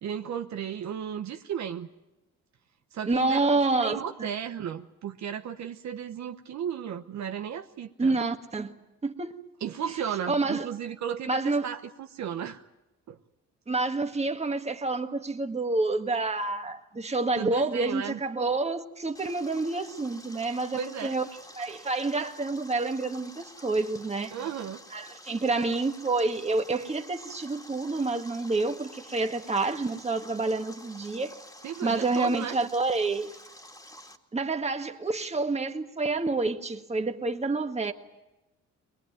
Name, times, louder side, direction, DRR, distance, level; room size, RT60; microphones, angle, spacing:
voice 1, 0.0-1.9 2.9-8.2 9.6-12.6 13.1-13.2 17.4-18.2 20.7-21.2 24.3-24.8 31.6-32.6, right 8 dB, 65° right, 1.1 m, -35 dB
voice 2, 3.1-4.0 8.0-8.7 9.0-9.3 10.3-10.7 11.3-11.7 13.7-21.3 21.6-24.4 24.9-31.4 31.8-33.3 34.3-37.9, right 3 dB, 20° right, 1.7 m, -28 dB
Stream, 19.1-34.2, left 1 dB, 10° left, 2.3 m, -49 dB
22.0 x 21.0 x 9.2 m
cardioid pair, 90°, 30 cm